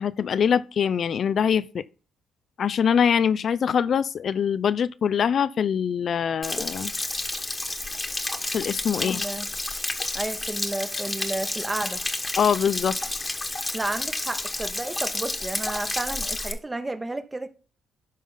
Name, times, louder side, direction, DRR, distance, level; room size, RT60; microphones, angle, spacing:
voice 1, 0.0-1.8 2.6-6.9 8.5-9.2 12.4-13.0, left 7 dB, 55° left, 0.3 m, -23 dB
Stream / Splash splatter / Trickle dribble, 6.4-16.5, left 2 dB, 15° left, 1.2 m, -30 dB
voice 2, 9.0-9.5 10.1-12.0 13.7-17.5, right 2 dB, 15° right, 0.9 m, -32 dB
11.5 x 4.0 x 3.8 m
cardioid pair, 90°, 0 cm